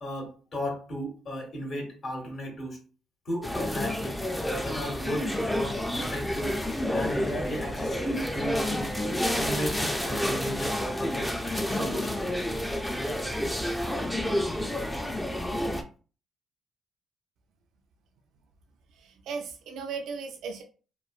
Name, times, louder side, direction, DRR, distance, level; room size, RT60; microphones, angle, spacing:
voice 1, 0.0-2.8 3.2-4.2 4.6-6.6 6.9-8.9 9.4-11.3 11.7-12.2, equal, 55° left, 0 dB, 1.4 m, -35 dB
sound 1, 3.4-15.8, left 1 dB, 5° left, 0.4 m, -29 dB
voice 2, 18.9-20.6, right 5 dB, 80° right, 4 dB, 0.4 m, -37 dB
3.0 x 2.1 x 2.4 m, 0.36 s
cardioid pair, 90°, 0 cm